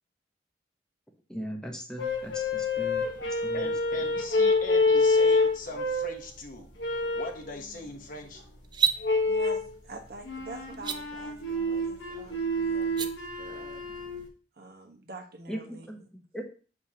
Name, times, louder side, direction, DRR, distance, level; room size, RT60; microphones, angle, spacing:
voice 1, 1.3-3.7 15.5-16.5, equal, 5° left, 2 dB, 1.0 m, -39 dB
sound 1, 2.0-6.2 6.8-7.4 9.0-9.7 10.2-14.2, left 2 dB, 90° left, 1.3 m, -27 dB
voice 2, 3.5-6.7 7.1-8.4, left 3 dB, 50° left, 3 dB, 1.0 m, -40 dB
sound 2, 8.6-9.0 10.7-11.0 12.8-13.1, right 8 dB, 25° right, 0.4 m, -26 dB
voice 3, 9.2-13.9 14.6-16.0, right 2 dB, 60° right, 2 dB, 1.2 m, -46 dB
6.6 x 5.0 x 2.8 m, 0.38 s
head